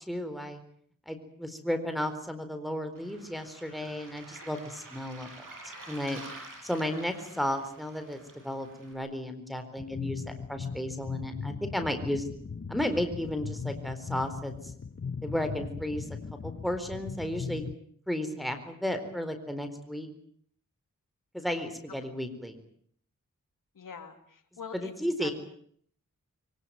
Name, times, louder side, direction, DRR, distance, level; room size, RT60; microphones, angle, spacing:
voice 1, 0.1-0.6 1.1-6.2 6.6-12.3 12.7-14.5 15.2-16.0 16.4-17.7 18.1-20.1 21.3-22.5 24.7-25.3, left 1 dB, ahead, 7 dB, 4.3 m, -33 dB
Waves surf, 2.9-8.9, right 2 dB, 80° right, 7.5 m, -48 dB
sound 1, 9.8-17.8, left 5 dB, 40° left, 1.0 m, -38 dB
voice 2, 23.8-24.9 25.2-25.3, left 6 dB, 90° left, 6 dB, 2.6 m, -44 dB
23.5 x 19.5 x 9.4 m, 0.63 s
cardioid pair, 55°, 32 cm